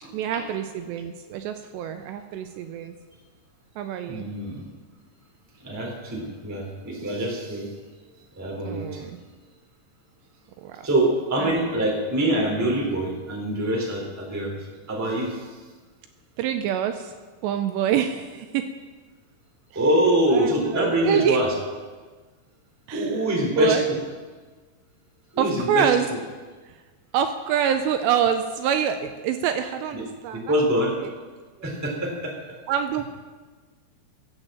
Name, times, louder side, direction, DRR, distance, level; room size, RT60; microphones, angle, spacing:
voice 1, 0.1-2.9 3.8-4.3 8.7-9.2 10.6-10.9 11.4-11.5 16.4-17.1 17.4-18.7 20.3-21.4 22.9-23.2 23.6-23.8 25.4-26.1 26.7-26.8 27.1-30.5 31.0-31.1 31.6-31.7 32.7-33.0, right 9 dB, 80° right, 7 dB, 2.7 m, -26 dB
voice 2, 4.1-4.7 5.6-7.7 8.3-9.1 10.8-14.6 14.9-15.5 19.7-21.5 22.9-23.8 25.3-25.9 29.9-30.0 30.5-30.9 31.6-32.3, right 1 dB, 5° right, -1 dB, 1.8 m, -24 dB
15.5 x 8.1 x 7.5 m, 1.4 s
omnidirectional pair, 5.3 m